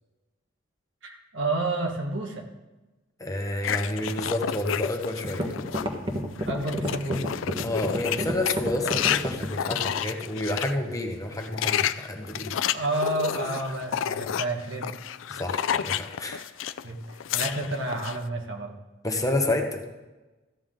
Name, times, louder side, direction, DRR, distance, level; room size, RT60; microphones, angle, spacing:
voice 1, 1.0-2.4 6.4-7.3 12.7-14.9 16.8-18.7, right 2 dB, 75° right, 2 dB, 1.6 m, -30 dB
voice 2, 3.2-5.4 7.6-12.5 15.3-16.4 19.0-19.8, left 1 dB, 20° left, 3 dB, 1.1 m, -29 dB
sound 1, 3.6-5.9 6.4-10.7 11.3-16.8 17.1-18.2, left 9 dB, 90° left, 0.4 m, -30 dB
sound 2, 5.2-9.9, equal, 25° right, 1.4 m, -29 dB
14.0 x 9.3 x 3.8 m, 1.1 s
head